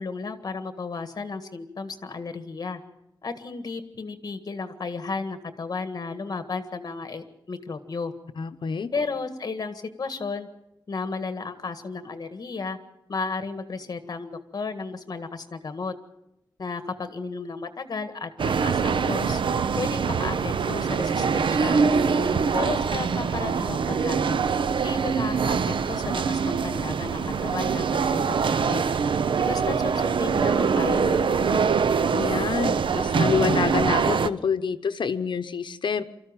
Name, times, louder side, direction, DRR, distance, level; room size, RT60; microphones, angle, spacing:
voice 1, 0.0-2.8 3.2-8.1 8.9-10.5 10.9-12.8 13.1-15.9 16.6-19.4 19.8-21.9 22.5-24.4 24.7-28.8 29.5-31.9, left 4 dB, 50° left, 9 dB, 1.7 m, -33 dB
voice 2, 8.4-8.9 22.0-22.5 32.1-36.0, left 6 dB, 70° left, 9 dB, 1.0 m, -27 dB
sound 1, 18.4-34.3, right 5 dB, 90° right, 0.7 m, -24 dB
25.0 x 14.0 x 9.0 m, 0.84 s
wide cardioid pair, 165°, 8 cm